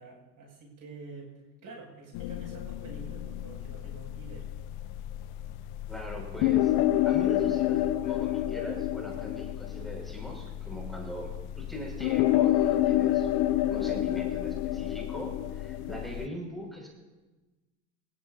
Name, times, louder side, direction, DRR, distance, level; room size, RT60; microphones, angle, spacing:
voice 1, 0.0-4.5, right 3 dB, 40° right, -2 dB, 7.1 m, -48 dB
sound 1, 2.1-16.3, left 13 dB, 50° left, 0.7 m, -29 dB
voice 2, 5.9-6.7 7.0-13.3 13.7-16.9, equal, ahead, -2 dB, 6.1 m, -41 dB
26.5 x 16.0 x 2.8 m, 1.2 s
hypercardioid pair, 85°, 50 cm